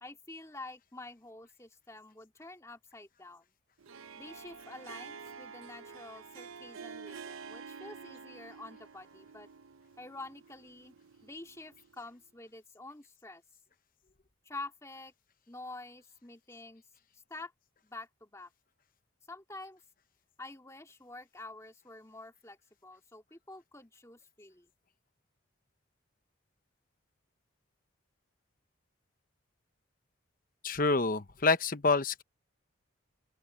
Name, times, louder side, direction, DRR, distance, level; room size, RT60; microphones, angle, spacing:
voice 1, 0.0-3.5 4.2-9.5 10.0-10.9 11.2-13.4 14.4-15.1 15.5-16.8 17.3-17.5 17.8-18.5 19.3-19.8 20.4-24.7, left 2 dB, 15° left, 2.5 m, -48 dB
Harp, 3.8-12.1, right 5 dB, 90° right, 0.7 m, -49 dB
voice 2, 30.6-32.2, left 3 dB, 40° left, 0.9 m, -27 dB
open air
head